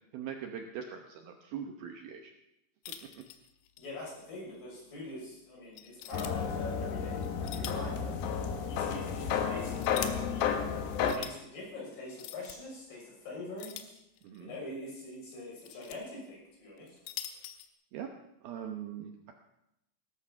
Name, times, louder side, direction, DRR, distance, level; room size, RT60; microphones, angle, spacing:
voice 1, 0.1-2.3 14.2-14.5 17.9-18.1 18.4-19.3, right 8 dB, 70° right, 4 dB, 2.5 m, -41 dB
sound 1, 2.8-3.9 4.2-4.3 4.9-5.0 5.8-6.3 7.2-7.9 8.3-8.4 9.3-10.1 10.9-11.3 12.1-12.6 13.6-14.4 15.3-16.0 16.8-17.7, left 11 dB, 90° left, 3.6 m, -43 dB
voice 2, 3.8-10.6 11.1-14.0 14.4-17.0, left 2 dB, 50° left, -4 dB, 8.3 m, -44 dB
sound 2, 6.1-11.1, left 7 dB, 70° left, 3.2 m, -32 dB
18.5 x 13.5 x 5.8 m, 0.85 s
omnidirectional pair, 5.2 m